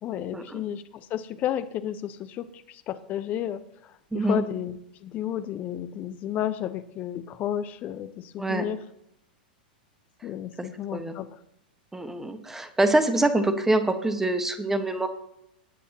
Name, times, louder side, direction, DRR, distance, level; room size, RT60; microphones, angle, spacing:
voice 1, 0.0-8.8 10.2-11.4, left 10 dB, 35° left, 13 dB, 0.9 m, -32 dB
voice 2, 4.1-4.4 8.4-8.7 10.6-10.7 10.9-11.1 11.9-15.1, right 2 dB, 5° right, 9 dB, 1.3 m, -25 dB
18.5 x 8.3 x 2.9 m, 0.77 s
figure-of-eight pair, 95°, 5 cm